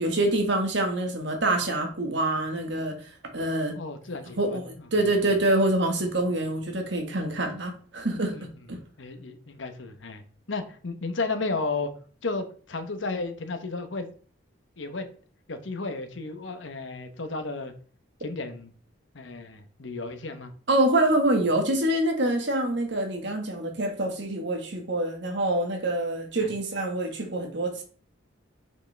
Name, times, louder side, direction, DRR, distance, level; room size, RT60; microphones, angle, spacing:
voice 1, 0.0-3.0 3.3-3.7 4.4-8.4 8.7-8.8 20.7-27.8, right 1 dB, 65° right, 4 dB, 1.6 m, -26 dB
voice 2, 3.7-4.6 5.0-5.1 8.2-8.5 9.0-10.2 10.5-11.9 12.2-14.1 14.8-15.1 15.5-17.7 18.2-18.7 19.1-20.5 26.4-26.5, left 3 dB, 80° left, 8 dB, 1.0 m, -33 dB
6.4 x 5.3 x 3.4 m, 0.43 s
head